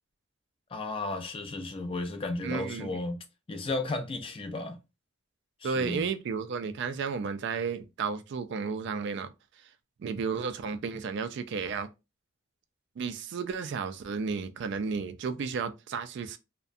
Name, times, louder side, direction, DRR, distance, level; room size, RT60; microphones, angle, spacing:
voice 1, 0.7-3.2 3.5-4.8 5.6-6.1, left 2 dB, 25° left, 0.4 m, -34 dB
voice 2, 2.4-3.0 5.6-9.3 10.0-11.9 13.0-16.4, right 5 dB, 60° right, 0.3 m, -33 dB
2.6 x 2.1 x 2.4 m
head